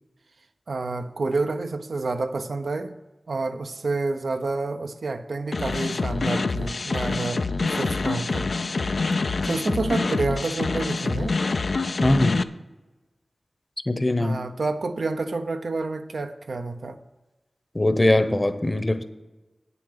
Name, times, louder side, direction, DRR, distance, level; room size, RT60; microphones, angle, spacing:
voice 1, 0.7-2.9 3.3-8.5 9.5-11.4 14.2-17.0, right 3 dB, 80° right, 7 dB, 0.6 m, -29 dB
sound 1, 5.5-12.4, left 3 dB, 65° left, 0.4 m, -26 dB
voice 2, 12.0-12.4 13.9-14.4 17.7-19.0, left 1 dB, 25° left, 10 dB, 0.8 m, -21 dB
8.6 x 7.0 x 6.5 m, 1.1 s
wide cardioid pair, 70°, 0 cm